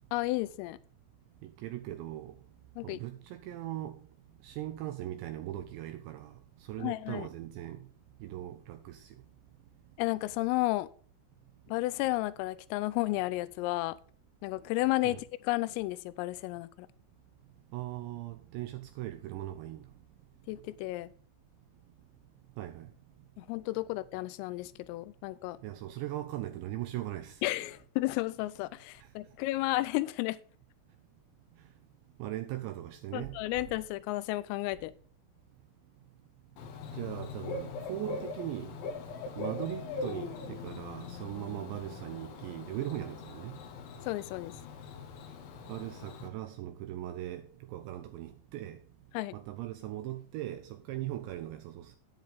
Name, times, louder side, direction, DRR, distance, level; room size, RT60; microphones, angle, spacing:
voice 1, 0.1-0.8 2.8-3.0 6.8-7.3 10.0-10.9 11.7-14.0 14.4-16.9 20.5-21.1 23.4-25.6 27.4-30.4 33.1-34.9 44.0-44.5 49.1-49.3, left 19 dB, 90° left, 3.3 m, -32 dB
voice 2, 1.4-2.4 2.8-4.0 4.4-6.4 6.7-7.9 8.2-9.1 15.0-15.2 17.7-19.8 22.6-22.9 25.6-27.4 29.0-29.1 32.2-33.4 36.9-38.8 39.4-43.6 45.7-48.8 49.3-52.0, right 14 dB, 80° right, 2.6 m, -39 dB
Bird / Cricket, 36.6-46.3, left 4 dB, 70° left, 3.6 m, -41 dB
10.0 x 9.3 x 3.5 m
omnidirectional pair, 5.8 m